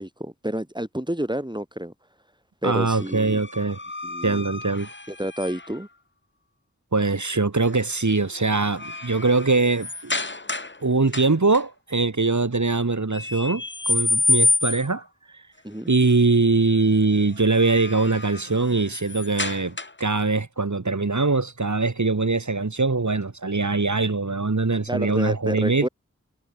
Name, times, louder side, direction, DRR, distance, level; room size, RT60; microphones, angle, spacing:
voice 1, 0.0-1.9 2.6-3.4 4.0-4.4 5.1-5.9 15.6-15.9 24.9-25.9, right 1 dB, 15° right, 5.2 m, -29 dB
voice 2, 2.6-3.8 4.2-4.9 6.9-10.1 10.8-15.0 15.9-25.9, right 3 dB, 65° right, 1.9 m, -22 dB
sound 1, 2.9-5.8 7.6-8.0 8.4-10.8 11.1-11.6 13.1-15.0 17.3-20.2, left 2 dB, 35° left, 1.5 m, -28 dB
wide cardioid pair, 45°, 31 cm